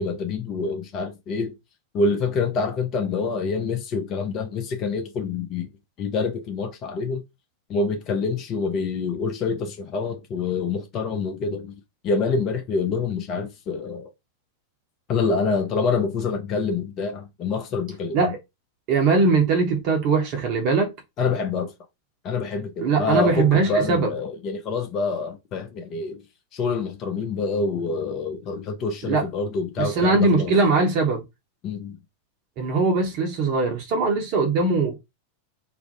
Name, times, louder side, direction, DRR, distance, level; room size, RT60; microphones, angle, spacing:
voice 1, 0.0-1.5 1.9-5.7 6.0-7.2 7.7-11.7 12.0-14.1 15.1-18.3 21.2-21.7 22.2-26.2 26.5-30.5 31.6-32.0, left 4 dB, 35° left, 0.5 m, -26 dB
voice 2, 18.9-20.9 22.8-24.1 29.0-29.2 29.8-31.2 32.6-34.9, right 4 dB, 40° right, 0.6 m, -21 dB
2.4 x 2.0 x 2.7 m
figure-of-eight pair, 90°, 0 cm